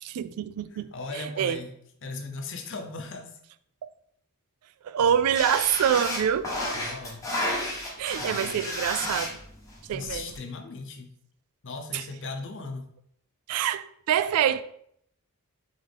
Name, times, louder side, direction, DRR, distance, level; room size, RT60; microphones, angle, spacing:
voice 1, 0.0-1.6 3.8-3.9 4.8-6.5 8.0-9.4 9.9-10.3 11.9-12.0 13.5-14.6, right 9 dB, 85° right, 0.3 m, -26 dB
voice 2, 0.7-1.7 2.0-3.4 6.7-7.2 8.2-8.7 9.9-11.1 11.6-12.9, left 3 dB, 55° left, 0.7 m, -38 dB
sound 1, 5.3-10.4, left 1 dB, 15° left, 0.9 m, -32 dB
4.0 x 3.8 x 3.4 m
head